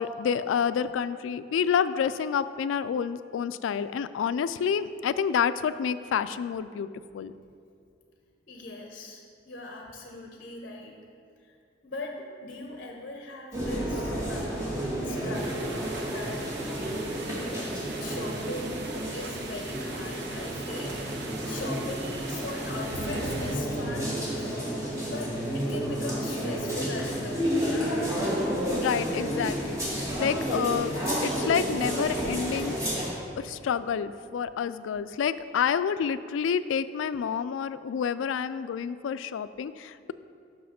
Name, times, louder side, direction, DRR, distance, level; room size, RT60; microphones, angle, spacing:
voice 1, 0.0-6.9 7.1-7.3 28.7-29.8 30.2-30.9 31.2-32.8 33.4-40.1, left 7 dB, 85° left, 14 dB, 0.3 m, -28 dB
voice 2, 8.5-11.0 11.4-11.6 11.8-16.4 17.2-24.5 24.9-28.0, left 2 dB, 50° left, 1 dB, 0.8 m, -40 dB
sound 1, 13.5-33.1, equal, 15° right, 1.9 m, -31 dB
sound 2, 15.3-23.6, right 3 dB, 65° right, 0.7 m, -40 dB
6.3 x 6.0 x 5.8 m, 2.4 s
head